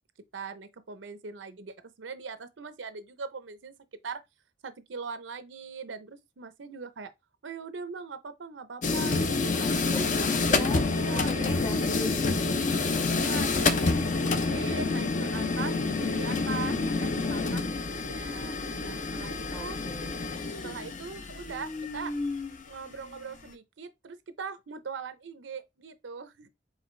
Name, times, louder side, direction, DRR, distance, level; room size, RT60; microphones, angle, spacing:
voice 1, 0.3-3.7 4.0-4.2 4.6-7.1 7.4-10.0 10.9-11.6 13.2-19.8 20.6-22.1 22.6-26.5, right 5 dB, 85° right, 0.6 m, -41 dB
sound 1, 8.8-23.1, left 3 dB, 45° left, 0.6 m, -28 dB
voice 2, 9.6-13.1 19.5-20.4, equal, 25° left, 1.0 m, -40 dB
5.0 x 3.2 x 3.1 m
head